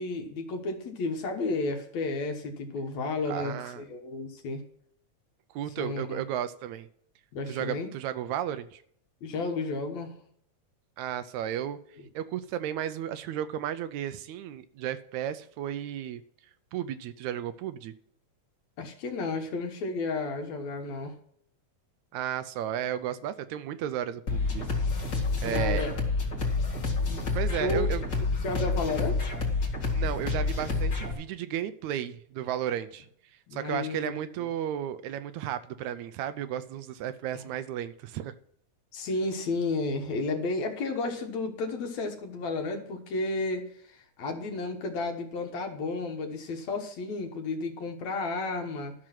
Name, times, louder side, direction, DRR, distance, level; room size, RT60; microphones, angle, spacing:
voice 1, 0.0-4.6 5.8-6.2 7.3-7.9 9.2-10.1 12.0-12.1 18.8-21.1 25.1-25.9 27.1-27.2 27.6-27.9 28.1-29.3 33.5-34.5 38.9-48.9, left 3 dB, 70° left, 4 dB, 2.6 m, -32 dB
voice 2, 3.3-3.8 5.5-6.9 7.5-8.8 11.0-11.8 12.2-16.2 16.7-17.9 22.1-24.7 25.4-25.9 27.3-28.1 29.9-33.1 33.5-38.3, right 10 dB, 80° right, 12 dB, 2.0 m, -33 dB
sound 1, 24.3-31.1, left 3 dB, 35° left, 2.4 m, -28 dB
12.5 x 6.3 x 5.8 m, 0.65 s
omnidirectional pair, 3.4 m